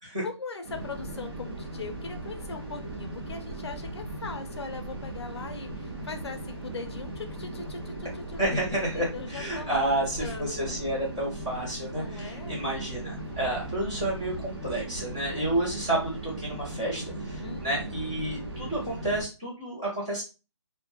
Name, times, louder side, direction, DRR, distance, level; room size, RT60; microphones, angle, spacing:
voice 1, 0.2-8.6 9.1-10.0 10.2-10.8 11.9-12.6 15.3-15.6 17.4-18.0, left 4 dB, 60° left, 7 dB, 0.5 m, -40 dB
sound 1, 0.6-19.2, right 2 dB, 50° right, 0.7 m, -38 dB
voice 2, 8.4-20.2, right 1 dB, 15° right, -8 dB, 0.6 m, -30 dB
2.2 x 2.0 x 2.9 m, 0.31 s
hypercardioid pair, 170°, 16 cm